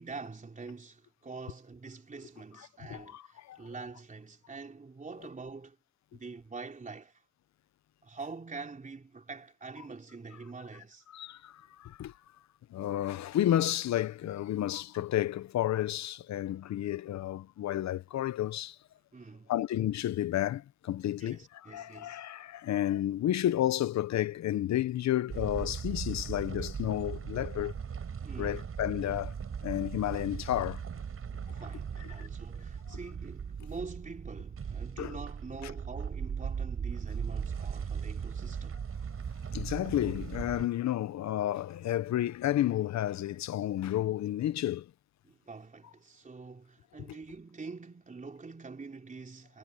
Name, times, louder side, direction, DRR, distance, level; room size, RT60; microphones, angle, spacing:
voice 1, 0.0-5.8 6.1-7.2 8.0-11.1 19.1-19.5 21.2-22.2 28.2-28.6 31.5-38.8 45.2-49.6, right 4 dB, 25° right, 3.7 m, -45 dB
voice 2, 2.9-3.6 11.1-12.1 12.7-18.8 19.5-27.7 28.4-29.3 29.6-30.8 32.2-32.3 32.9-33.0 35.0-35.2 39.5-44.9, left 12 dB, 65° left, 0.9 m, -31 dB
sound 1, 25.3-40.7, right 7 dB, 45° right, 7.7 m, -38 dB
cardioid pair, 90°, 30 cm